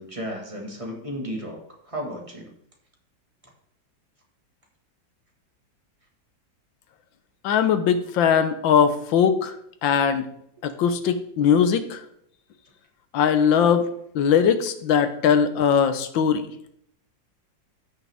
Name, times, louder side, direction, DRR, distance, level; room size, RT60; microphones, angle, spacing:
voice 1, 0.0-1.6 1.9-2.5, equal, 20° right, 0 dB, 1.7 m, -33 dB
voice 2, 7.4-9.5 9.8-10.3 10.6-12.0 13.1-13.8 14.1-16.5, left 7 dB, 90° left, 10 dB, 1.6 m, -20 dB
14.5 x 6.1 x 3.5 m, 0.71 s
omnidirectional pair, 2.0 m